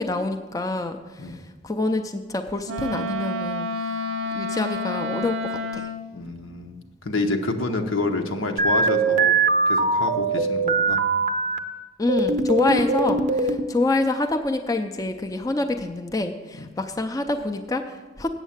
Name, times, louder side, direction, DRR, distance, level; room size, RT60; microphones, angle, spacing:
voice 1, 0.0-1.4 1.6-3.9 4.3-5.9 12.0-18.3, left 2 dB, 15° left, 5 dB, 0.4 m, -26 dB
Wind instrument woodwind instrument, 2.6-6.1, left 1 dB, 85° right, 0.5 m, -29 dB
voice 2, 6.1-9.4 9.7-11.0 16.5-16.7, left 2 dB, 85° left, 5 dB, 1.0 m, -28 dB
sound 1, 8.6-11.6 12.1-13.7, right 3 dB, 35° right, 0.5 m, -21 dB
8.1 x 7.4 x 7.2 m, 1.3 s
head